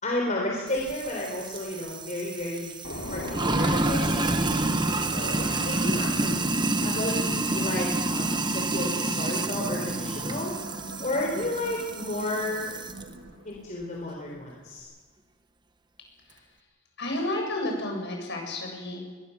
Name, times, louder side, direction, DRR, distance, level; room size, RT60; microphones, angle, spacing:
voice 1, 0.0-2.8 3.1-6.5 6.8-10.5 11.0-12.8 13.5-14.9, left 1 dB, 40° left, -2 dB, 3.9 m, -32 dB
Sink (filling or washing), 0.7-13.0, right 2 dB, 20° right, 1.2 m, -29 dB
sound 1, 2.8-14.8, left 1 dB, 75° left, 5.4 m, -42 dB
sound 2, 3.8-13.7, right 2 dB, 55° right, 2.0 m, -44 dB
voice 2, 17.0-19.1, left 1 dB, 60° left, 1 dB, 7.3 m, -31 dB
22.5 x 21.0 x 7.1 m, 1.4 s
head